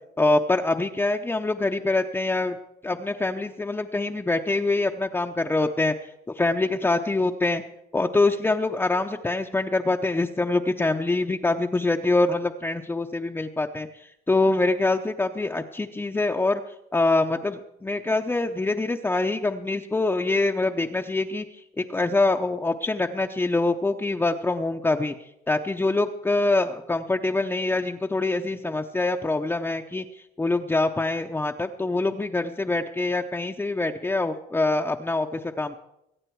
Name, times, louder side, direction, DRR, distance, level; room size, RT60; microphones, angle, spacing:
voice 1, 0.2-2.6 2.8-5.9 6.4-7.6 7.9-16.6 16.9-21.4 21.8-25.1 25.5-30.0 30.4-35.8, left 2 dB, 10° left, 3 dB, 0.6 m, -24 dB
23.0 x 8.9 x 4.6 m, 0.84 s
cardioid pair, 110°, 17 cm